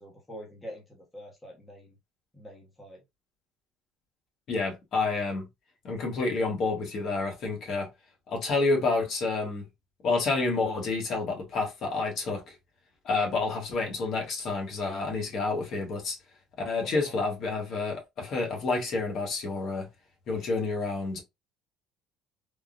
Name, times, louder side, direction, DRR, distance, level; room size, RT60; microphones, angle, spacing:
voice 1, 0.0-2.0 2.3-3.0 16.8-17.2, equal, 10° left, 1.0 m, -45 dB
voice 2, 4.5-5.5 5.8-7.9 8.3-9.7 10.0-12.4 13.0-16.2 16.6-19.9 20.3-21.2, left 3 dB, 50° left, 1.3 m, -29 dB
3.5 x 2.3 x 2.4 m
cardioid pair, 135°, 0 cm